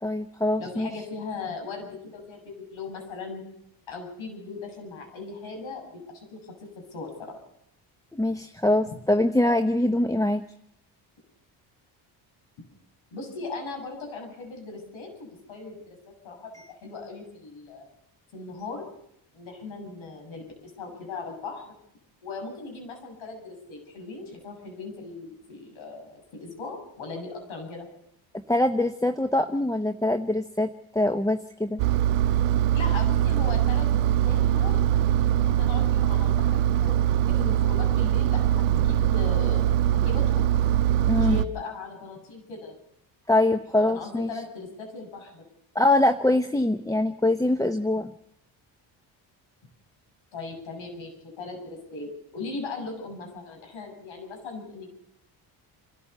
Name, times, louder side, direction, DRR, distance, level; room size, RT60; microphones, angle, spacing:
voice 1, 0.0-0.9 8.1-10.4 28.5-31.8 41.1-41.4 43.3-44.3 45.7-48.1, left 1 dB, 5° left, 8 dB, 0.9 m, -23 dB
voice 2, 0.6-3.5 3.9-6.0 6.3-7.4 8.9-9.0 13.1-16.0 16.2-17.9 18.3-18.9 19.3-21.7 22.2-27.9 32.7-37.0 37.3-39.6 39.9-40.6 41.2-42.7 43.9-45.4 50.3-54.9, left 3 dB, 70° left, 3 dB, 7.4 m, -38 dB
Engine, 31.8-41.5, right 11 dB, 85° right, 0.7 m, -22 dB
28.0 x 13.5 x 6.9 m, 0.77 s
supercardioid pair, 65°, 48 cm